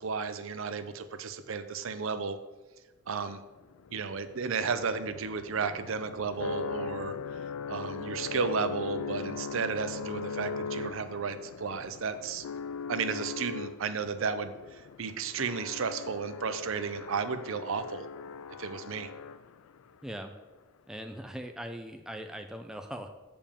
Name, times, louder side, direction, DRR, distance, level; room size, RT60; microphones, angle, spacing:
voice 1, 0.0-2.4 3.1-3.4 3.9-7.2 7.7-12.5 12.9-18.1 18.6-19.1, right 5 dB, 70° right, 11 dB, 0.5 m, -33 dB
sound 1, 3.6-19.8, left 5 dB, 75° left, 0.3 m, -40 dB
voice 2, 20.0-20.3 20.9-23.1, equal, 5° right, 5 dB, 0.3 m, -40 dB
7.0 x 5.2 x 5.1 m, 1.1 s
head